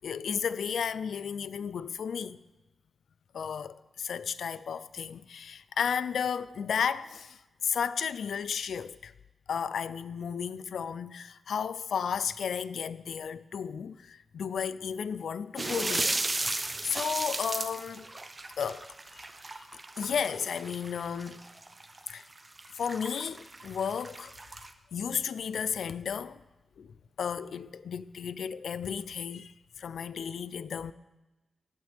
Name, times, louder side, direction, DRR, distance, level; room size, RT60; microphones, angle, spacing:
voice 1, 0.0-2.4 3.3-7.4 7.6-9.1 9.5-16.2 16.8-18.1 18.6-18.9 19.1-19.3 20.0-21.4 22.1-22.2 22.8-24.3 24.9-26.4 26.8-26.9 27.2-29.5 29.8-30.9, left 7 dB, 75° left, 0.4 m, -33 dB
sound 1, 15.6-24.7, right 2 dB, 25° right, 0.6 m, -35 dB
16.0 x 9.1 x 3.4 m
wide cardioid pair, 135°, 0 cm